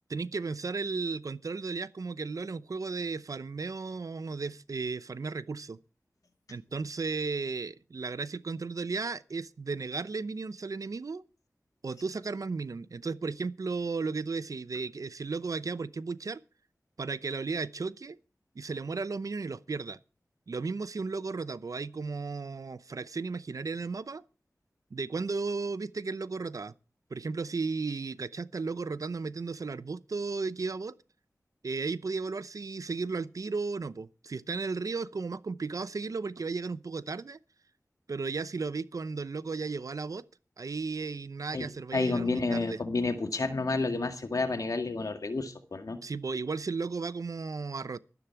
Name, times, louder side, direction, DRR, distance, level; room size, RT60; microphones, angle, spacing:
voice 1, 0.1-5.8 6.5-11.2 11.8-16.4 17.0-18.2 18.6-20.0 20.5-24.2 24.9-26.7 27.1-30.9 31.6-37.4 38.1-40.2 40.6-42.8 46.0-48.0, right 4 dB, 75° right, 0.7 m, -34 dB
voice 2, 41.9-46.0, left 3 dB, 75° left, 1.9 m, -30 dB
13.5 x 13.0 x 4.7 m
cardioid pair, 40°, 6 cm